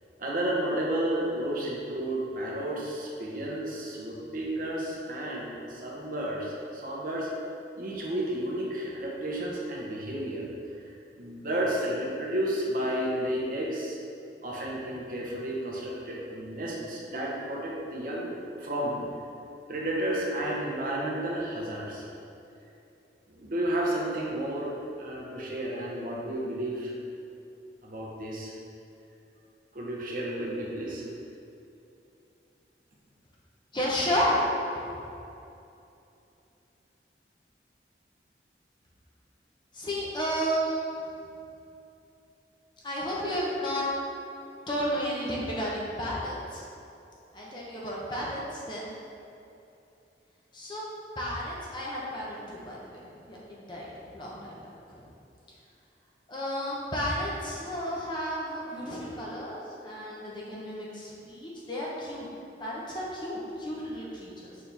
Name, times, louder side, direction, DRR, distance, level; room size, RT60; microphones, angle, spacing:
voice 1, 0.2-7.3 7.7-10.5 10.8-14.0 14.4-19.0 19.7-22.1 23.3-26.9 27.8-28.5 29.7-31.1, right 1 dB, 50° right, -4 dB, 1.0 m, -32 dB
voice 2, 33.7-34.4 39.7-41.0 42.8-43.8 44.7-46.6 47.3-48.9 50.5-50.8 51.2-53.0 53.3-54.6 54.9-55.1 56.3-62.3 62.6-64.5, equal, 25° left, -5 dB, 0.9 m, -32 dB
6.4 x 4.4 x 3.4 m, 2.8 s
head